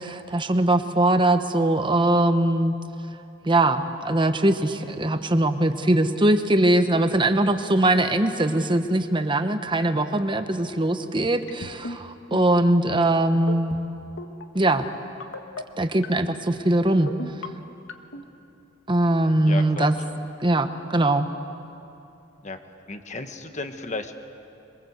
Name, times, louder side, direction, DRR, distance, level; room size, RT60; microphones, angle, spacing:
voice 1, 0.0-2.7 3.4-13.7 14.5-14.8 15.8-17.1 18.9-19.9 20.4-21.3, right 1 dB, 25° right, 8 dB, 1.1 m, -21 dB
sound 1, 11.5-12.0 12.3-12.6 13.3-13.8 14.2-14.4 15.2-15.6 16.0-16.4 17.1-17.5 17.9-18.2, left 2 dB, 85° left, 1.6 m, -35 dB
voice 2, 19.5-19.9 22.4-22.6 22.9-24.2, left 3 dB, 35° left, 7 dB, 1.4 m, -33 dB
27.0 x 22.5 x 8.0 m, 2.8 s
head